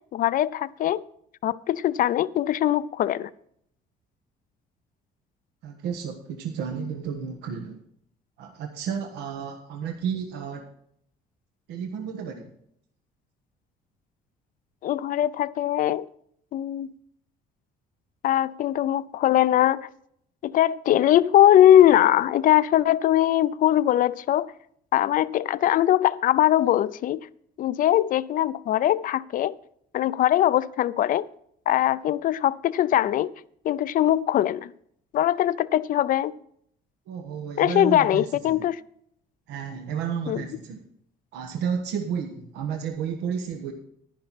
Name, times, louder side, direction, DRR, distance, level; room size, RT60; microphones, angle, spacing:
voice 1, 0.1-1.0 1.4-3.3 14.8-16.1 16.5-16.9 18.2-19.9 20.4-24.5 24.9-27.3 27.6-29.5 29.9-31.3 31.7-33.3 33.6-34.7 35.1-36.3 37.6-38.8 40.3-40.4, left 12 dB, 55° left, 0.5 m, -21 dB
voice 2, 5.6-7.8 8.4-10.7 11.7-12.5 37.1-38.6 39.5-40.8 41.3-43.7, right 7 dB, 85° right, 1.2 m, -32 dB
10.5 x 10.5 x 4.2 m
cardioid pair, 110°, 17 cm